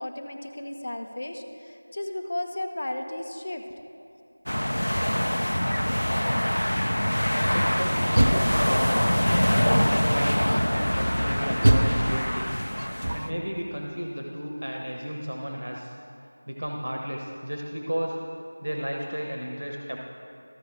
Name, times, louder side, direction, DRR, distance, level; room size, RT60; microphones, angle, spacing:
voice 1, 0.0-3.8, left 1 dB, 30° left, 4 dB, 0.5 m, -34 dB
sound 1, 4.5-13.3, equal, 85° left, 0.3 m, -24 dB
voice 2, 7.2-9.0 9.5-12.5 13.1-16.0 16.5-18.2 18.6-20.0, equal, 80° right, 0 dB, 1.0 m, -33 dB
Door, 7.9-9.1 9.7-10.3 11.6-13.5, right 1 dB, 35° right, 0.5 m, -25 dB
13.5 x 4.8 x 4.8 m, 2.6 s
figure-of-eight pair, 175°, 0 cm